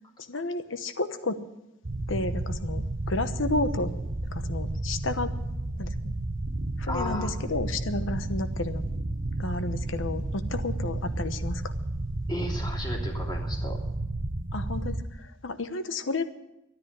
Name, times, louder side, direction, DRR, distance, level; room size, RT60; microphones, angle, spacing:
voice 1, 0.2-1.4 2.1-3.9 4.3-5.3 5.8-6.1 6.8-8.8 9.4-11.6 14.5-16.2, left 2 dB, 75° left, 10 dB, 1.0 m, -32 dB
sound 1, 1.8-15.0, right 2 dB, 45° right, 0.9 m, -32 dB
voice 2, 6.9-7.3 12.3-13.8, left 1 dB, 25° left, -2 dB, 3.0 m, -34 dB
13.0 x 11.0 x 8.0 m, 0.92 s
head